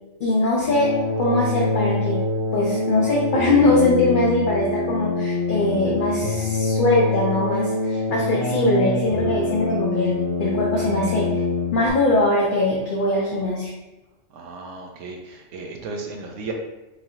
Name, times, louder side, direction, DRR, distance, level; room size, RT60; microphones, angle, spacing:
voice 1, 0.2-2.2 2.5-11.4 11.7-13.7, left 2 dB, 50° left, -4 dB, 0.7 m, -21 dB
sound 1, 0.6-11.9, left 2 dB, 75° left, 1.0 m, -25 dB
voice 2, 14.3-16.5, right 4 dB, 85° right, 1 dB, 1.0 m, -35 dB
4.7 x 3.0 x 2.7 m, 1.0 s
omnidirectional pair, 1.2 m